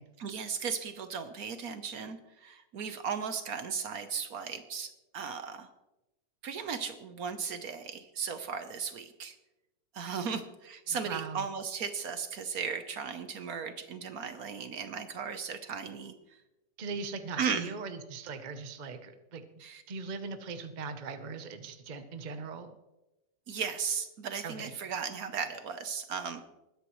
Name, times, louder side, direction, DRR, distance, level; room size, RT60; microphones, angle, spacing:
voice 1, 0.2-5.7 6.4-9.3 9.9-16.4 17.4-17.7 19.6-19.8 23.5-26.4, right 6 dB, 60° right, 9 dB, 1.2 m, -36 dB
voice 2, 10.9-11.4 16.8-19.4 19.9-22.7 24.4-24.7, right 4 dB, 35° right, 8 dB, 0.8 m, -40 dB
20.5 x 10.0 x 3.1 m, 0.97 s
omnidirectional pair, 1.9 m